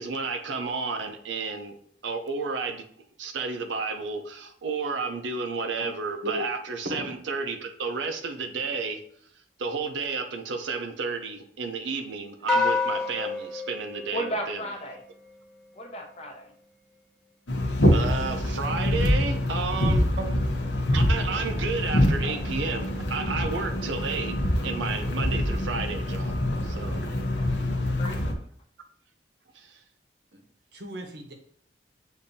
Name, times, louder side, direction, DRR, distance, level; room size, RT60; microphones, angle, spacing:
voice 1, 0.0-1.8 2.0-2.9 3.2-9.0 9.6-14.6 17.9-20.0 20.9-24.3 24.6-26.4 26.6-27.0 29.5-29.8, right 4 dB, 80° right, 6 dB, 0.5 m, -32 dB
sound 1, 12.5-15.0, left 3 dB, 5° left, 0.8 m, -28 dB
voice 2, 14.1-15.0 15.7-16.5 27.0-27.5 28.0-28.2, equal, 35° left, 3 dB, 0.6 m, -35 dB
sound 2, 17.5-28.3, left 1 dB, 75° left, 0.8 m, -25 dB
voice 3, 30.7-31.3, right 1 dB, 60° right, 3 dB, 0.8 m, -35 dB
6.9 x 2.6 x 2.6 m, 0.64 s
head